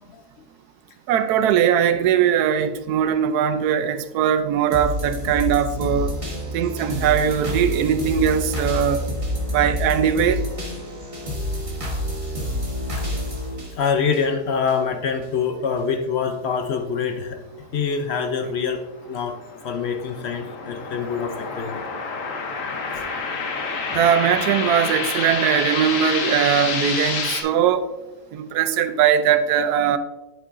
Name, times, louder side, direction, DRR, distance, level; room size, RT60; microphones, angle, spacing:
voice 1, 1.1-6.1 6.5-9.0 9.5-10.4 23.9-27.9 28.3-30.0, right 9 dB, 75° right, 1.1 m, -20 dB
sound 1, 4.7-14.8 15.2-15.3, left 1 dB, 20° right, 1.2 m, -28 dB
voice 2, 13.8-17.4 17.7-18.8 19.1-19.4 19.6-21.8, left 6 dB, 75° left, 0.6 m, -25 dB
sound 2, 19.0-27.4, left 4 dB, 55° left, 1.2 m, -28 dB
8.2 x 7.6 x 2.5 m
omnidirectional pair, 1.7 m